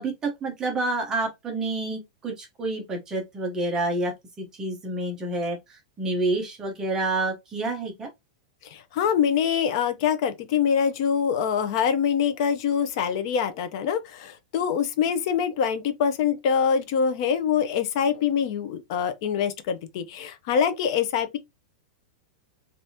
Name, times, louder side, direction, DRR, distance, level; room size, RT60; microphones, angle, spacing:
voice 1, 0.0-8.1, right 2 dB, 15° right, 0.8 m, -29 dB
voice 2, 8.6-21.4, left 7 dB, 40° left, 0.6 m, -24 dB
3.4 x 2.6 x 2.7 m
supercardioid pair, 170°, 4 cm